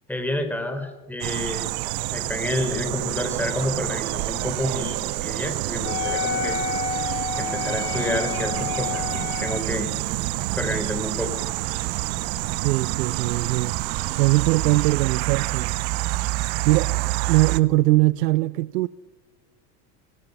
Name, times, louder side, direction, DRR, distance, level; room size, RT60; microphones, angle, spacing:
voice 1, 0.1-1.7 2.1-6.6 7.4-9.9 10.5-11.3, left 1 dB, 5° left, 4.5 m, -29 dB
sound 1, 1.2-17.6, right 20 dB, 50° right, 1.0 m, -28 dB
Wind instrument woodwind instrument, 5.8-9.8, left 9 dB, 70° left, 1.8 m, -30 dB
sound 2, 7.8-15.0, right 6 dB, 30° right, 2.9 m, -41 dB
voice 2, 12.6-15.9 16.4-18.9, right 19 dB, 75° right, 0.7 m, -22 dB
25.0 x 20.0 x 5.6 m
hypercardioid pair, 85°, 48 cm